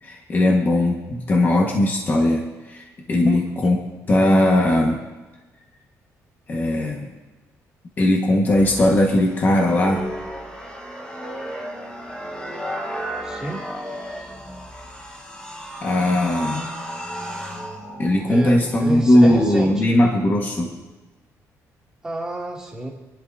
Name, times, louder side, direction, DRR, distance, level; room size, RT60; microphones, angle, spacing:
voice 1, 0.0-3.8 4.1-5.0 6.5-7.1 8.0-10.1 14.8-14.9 15.8-16.7 18.0-20.7, left 1 dB, 35° left, 0 dB, 1.5 m, -19 dB
sound 1, 8.5-19.7, equal, 15° left, 1.7 m, -34 dB
voice 2, 13.2-13.6 18.3-19.7 22.0-22.9, right 2 dB, 10° right, -4 dB, 2.5 m, -30 dB
28.5 x 11.0 x 2.7 m, 1.2 s
cardioid pair, 135°, 6 cm